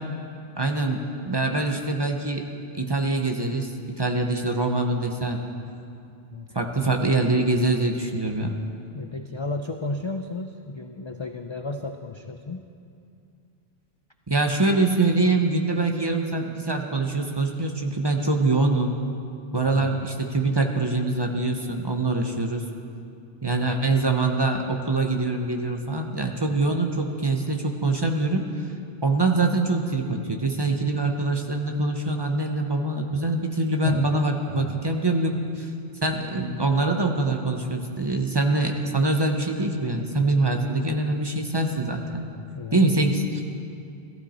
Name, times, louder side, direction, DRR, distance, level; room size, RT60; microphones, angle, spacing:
voice 1, 0.6-2.4 2.7-5.4 6.5-8.6 14.3-18.9 19.5-22.6 23.4-28.4 29.0-35.7 36.0-42.2 42.7-43.4, right 2 dB, 25° right, 3 dB, 0.9 m, -24 dB
voice 2, 8.9-12.6 19.5-19.9 23.5-23.8 33.8-34.1 34.5-34.7 42.5-42.9, left 2 dB, 40° left, 5 dB, 0.4 m, -33 dB
15.0 x 14.5 x 4.3 m, 2.5 s
omnidirectional pair, 1.1 m